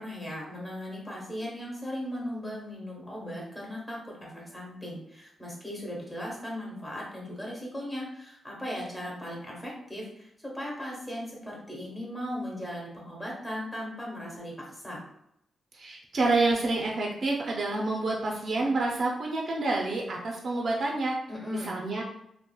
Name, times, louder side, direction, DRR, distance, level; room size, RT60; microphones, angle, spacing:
voice 1, 0.0-15.0 21.3-21.8, left 1 dB, 15° left, -3 dB, 1.0 m, -37 dB
voice 2, 15.7-21.2 21.5-22.0, right 2 dB, 55° right, -1 dB, 0.4 m, -28 dB
2.8 x 2.0 x 2.2 m, 0.78 s
cardioid pair, 80°, 0 cm